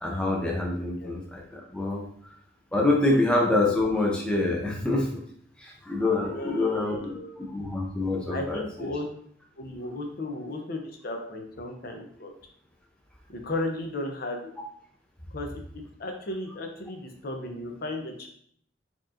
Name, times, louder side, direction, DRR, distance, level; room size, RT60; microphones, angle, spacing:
voice 1, 0.0-2.1 2.7-5.2 5.6-8.9, left 2 dB, 5° left, -1 dB, 0.5 m, -26 dB
voice 2, 6.3-7.4 8.3-9.1 9.6-12.3 13.3-14.5 15.3-15.6 16.0-18.3, left 1 dB, 55° left, 3 dB, 0.6 m, -35 dB
4.5 x 2.9 x 2.4 m, 0.63 s
head